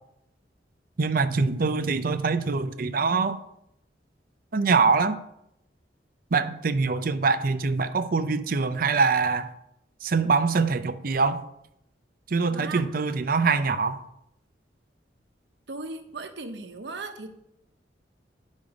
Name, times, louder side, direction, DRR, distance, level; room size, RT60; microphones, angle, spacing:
voice 1, 1.0-3.4 4.5-5.2 6.3-9.5 10.0-11.4 12.3-14.0, right 4 dB, 50° right, 0.5 m, -24 dB
voice 2, 12.5-12.9 15.7-17.3, right 3 dB, 70° right, 1.0 m, -37 dB
10.5 x 5.3 x 4.9 m
head